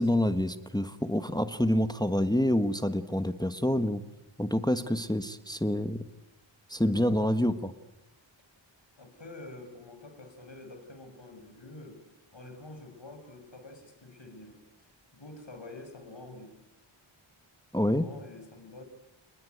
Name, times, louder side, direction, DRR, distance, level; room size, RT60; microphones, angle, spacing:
voice 1, 0.0-4.0 4.4-6.0 6.7-7.7 17.7-18.1, left 1 dB, 10° left, 11 dB, 1.3 m, -27 dB
voice 2, 9.0-12.0 12.3-16.5 17.9-18.8, left 2 dB, 60° left, 6 dB, 6.2 m, -47 dB
28.5 x 21.5 x 9.4 m, 0.90 s
wide cardioid pair, 75°, 50 cm